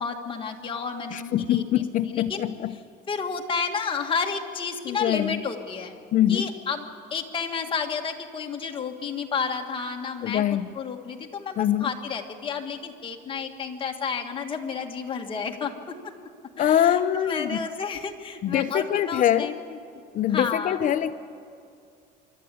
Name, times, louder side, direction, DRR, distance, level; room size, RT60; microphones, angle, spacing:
voice 1, 0.0-2.5 3.1-6.0 6.3-15.9 16.6-19.8 20.3-20.8, left 5 dB, 30° left, 2 dB, 1.7 m, -31 dB
voice 2, 1.1-2.7 4.9-5.4 6.1-6.5 10.2-10.7 11.6-11.9 16.6-17.7 18.4-19.5 20.1-21.1, left 11 dB, 45° left, 10 dB, 0.6 m, -24 dB
26.0 x 12.5 x 8.4 m, 2.5 s
cardioid pair, 150°, 18 cm